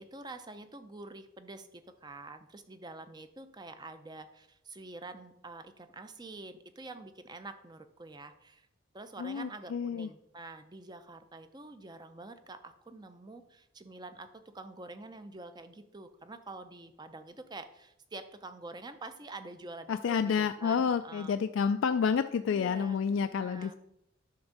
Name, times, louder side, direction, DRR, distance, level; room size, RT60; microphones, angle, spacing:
voice 1, 0.0-8.7 8.9-21.4 22.5-23.0 23.3-23.8, right 2 dB, 20° right, 9 dB, 0.5 m, -47 dB
voice 2, 9.2-10.1 19.9-23.7, left 6 dB, 65° left, 9 dB, 0.3 m, -29 dB
10.5 x 3.6 x 6.6 m, 0.83 s
head